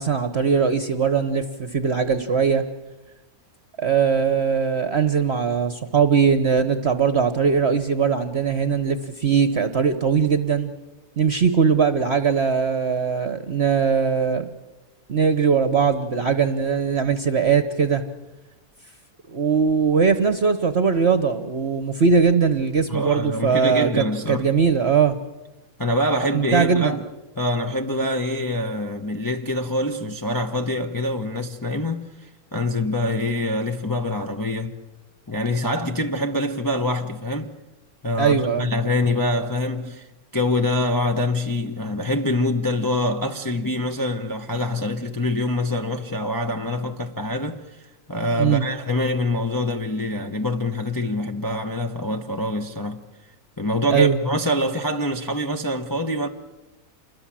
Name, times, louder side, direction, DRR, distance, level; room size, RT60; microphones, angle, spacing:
voice 1, 0.0-2.6 3.8-10.7 11.2-14.5 15.1-18.0 19.3-25.2 26.3-27.0 38.2-38.7 48.4-48.6 53.9-54.2, right 6 dB, 45° right, 1.3 m, -20 dB
voice 2, 22.9-24.5 25.8-27.0 27.4-32.0 32.5-34.7 35.3-37.5 38.0-40.1 40.3-47.8 48.1-53.0 53.6-56.3, left 1 dB, 15° left, 1.0 m, -25 dB
28.0 x 21.5 x 7.6 m
omnidirectional pair, 1.6 m